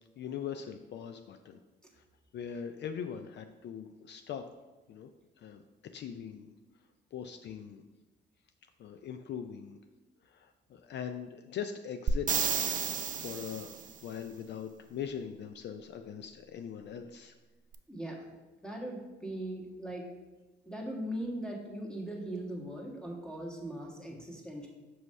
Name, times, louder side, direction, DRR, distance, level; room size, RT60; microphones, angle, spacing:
voice 1, 0.2-1.6 2.0-2.1 2.3-4.4 4.9-5.1 5.4-5.6 5.9-6.5 7.1-7.8 8.8-9.8 10.2-12.6 12.9-13.8 14.0-17.3, left 8 dB, 60° left, 8 dB, 0.4 m, -41 dB
sound 1, 12.1-13.9 17.7-17.8, right 7 dB, 40° right, 0.5 m, -32 dB
voice 2, 17.9-18.3 18.6-20.1 20.6-24.7, right 1 dB, 5° left, -1 dB, 1.4 m, -39 dB
6.2 x 3.1 x 5.4 m, 1.1 s
cardioid pair, 90°, 20 cm